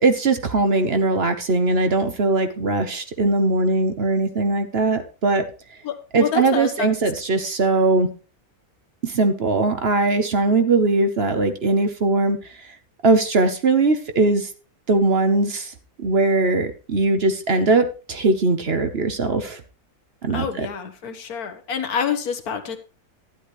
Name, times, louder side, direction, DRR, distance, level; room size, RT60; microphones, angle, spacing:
voice 1, 0.0-5.4 6.1-8.1 9.0-12.4 13.0-14.5 14.9-15.7 16.0-19.6 20.2-20.7, right 3 dB, 45° right, 8 dB, 1.1 m, -20 dB
voice 2, 5.8-6.9 20.3-22.8, left 7 dB, 80° left, 8 dB, 1.7 m, -27 dB
12.0 x 10.0 x 3.1 m, 0.35 s
omnidirectional pair, 1.6 m